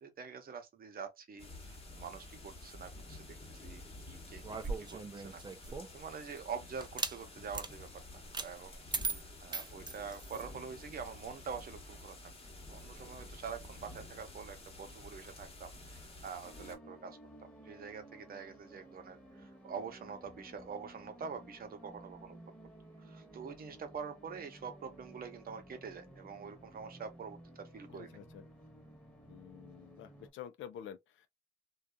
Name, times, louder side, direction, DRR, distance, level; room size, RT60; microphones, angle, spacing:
voice 1, 0.0-12.2 12.7-22.4 23.0-28.1, right 6 dB, 50° right, 0.8 m, -46 dB
sound 1, 1.4-16.8, left 2 dB, 30° left, 1.1 m, -51 dB
sound 2, 4.4-6.0 6.8-7.2 7.5-7.7 8.3-8.5 8.9-10.5, right 4 dB, 20° right, 0.5 m, -38 dB
sound 3, 16.4-30.3, right 1 dB, 5° left, 1.2 m, -55 dB
voice 2, 27.9-28.4 29.3-31.3, left 10 dB, 75° left, 0.5 m, -49 dB
2.6 x 2.3 x 2.2 m
cardioid pair, 90°, 20 cm